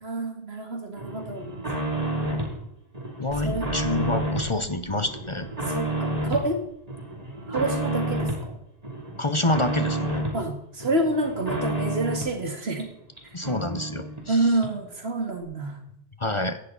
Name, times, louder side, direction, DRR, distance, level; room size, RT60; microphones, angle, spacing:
voice 1, 0.0-1.5 3.4-3.7 5.7-6.6 7.5-8.6 10.3-12.9 14.3-15.8, right 2 dB, 75° right, 4 dB, 2.6 m, -28 dB
sound 1, 1.0-2.6 2.9-4.5 4.9-6.5 6.9-8.4 8.8-10.4 10.8-12.4 12.8-12.9 13.2-13.3 13.4-14.3 14.6-14.7, right 1 dB, 35° right, 3.2 m, -30 dB
sound 2, 3.2-8.9, left 1 dB, 60° left, 5.7 m, -43 dB
voice 2, 3.2-5.5 9.2-10.3 13.3-14.5 16.2-16.6, left 2 dB, 30° left, 9 dB, 1.0 m, -27 dB
17.0 x 11.5 x 4.1 m, 0.74 s
omnidirectional pair, 1.1 m